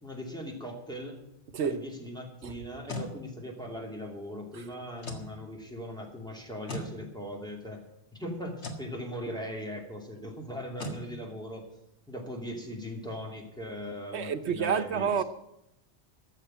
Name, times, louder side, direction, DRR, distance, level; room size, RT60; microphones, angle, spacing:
voice 1, 0.0-1.2 1.6-7.8 8.1-11.6 12.1-15.2, equal, 5° left, 2.7 m, -39 dB
sound 1, 2.6-3.1 5.0-5.3 6.7-6.9 8.6-8.9 10.8-11.0, left 1 dB, 85° left, 2.0 m, -37 dB
voice 2, 14.1-15.2, right 7 dB, 80° right, 1.2 m, -28 dB
14.0 x 6.7 x 9.1 m
omnidirectional pair, 1.1 m